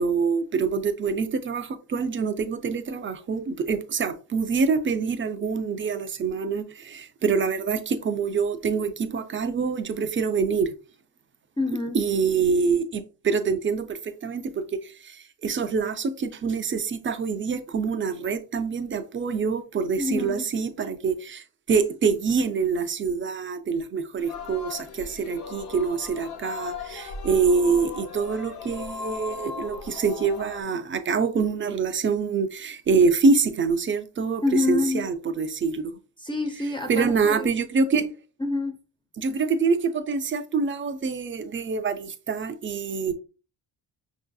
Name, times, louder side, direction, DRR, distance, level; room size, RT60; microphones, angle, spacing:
voice 1, 0.0-10.7 11.9-36.0 36.9-38.1 39.2-43.1, right 5 dB, 30° right, 0.5 m, -25 dB
voice 2, 11.6-12.0 20.0-20.5 34.4-35.1 36.2-37.5 38.4-38.8, left 3 dB, 10° left, 0.6 m, -27 dB
Singing, 24.2-30.6, left 5 dB, 70° left, 1.0 m, -37 dB
5.5 x 2.7 x 2.3 m
cardioid pair, 95°, 39 cm